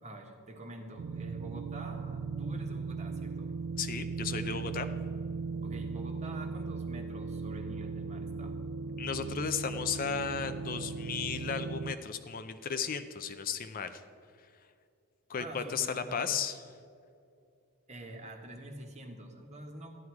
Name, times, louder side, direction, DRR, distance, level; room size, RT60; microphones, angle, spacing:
voice 1, 0.0-3.6 5.6-8.6 15.3-16.4 17.9-20.0, right 1 dB, 30° right, 3 dB, 1.4 m, -46 dB
sound 1, 1.0-11.9, right 4 dB, 65° right, 0.4 m, -38 dB
voice 2, 3.8-4.9 9.0-14.0 15.3-16.6, left 6 dB, 40° left, 9 dB, 0.5 m, -35 dB
13.5 x 11.0 x 4.7 m, 2.4 s
head